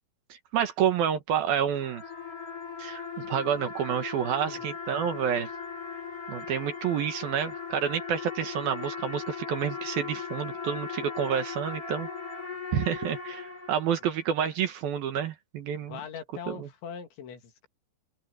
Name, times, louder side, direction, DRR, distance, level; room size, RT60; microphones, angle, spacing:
voice 1, 0.3-2.0 2.8-5.5 6.3-12.1 12.7-16.0 16.5-16.7, right 8 dB, 65° right, 2.9 m, -29 dB
sound 1, 1.5-14.2, left 5 dB, 30° left, 6.7 m, -38 dB
voice 2, 15.8-17.7, left 7 dB, 80° left, 5.1 m, -41 dB
open air
omnidirectional pair, 5.2 m